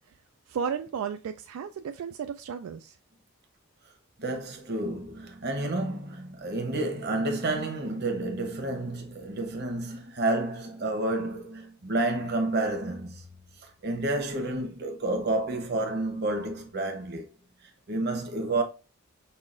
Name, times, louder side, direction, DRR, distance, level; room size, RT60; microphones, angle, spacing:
voice 1, 0.5-3.0, right 7 dB, 75° right, 0.3 m, -34 dB
voice 2, 4.2-13.3 13.6-17.3 17.6-18.6, right 2 dB, 50° right, 0.9 m, -30 dB
5.5 x 2.4 x 2.5 m
head